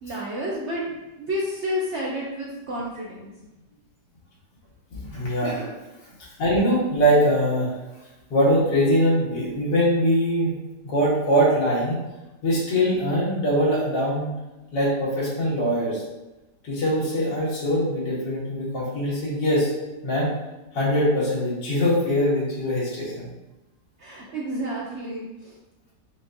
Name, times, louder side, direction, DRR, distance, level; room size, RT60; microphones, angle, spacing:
voice 1, 0.0-3.3 24.0-25.5, equal, 65° right, -4 dB, 0.7 m, -30 dB
voice 2, 4.9-5.7 6.4-7.7 8.3-10.5 10.8-12.0 12.4-14.3 14.7-16.0 16.6-19.7 20.0-20.3 20.7-23.3, equal, 85° left, -6 dB, 2.0 m, -22 dB
6.0 x 2.4 x 2.6 m, 1.0 s
omnidirectional pair, 1.8 m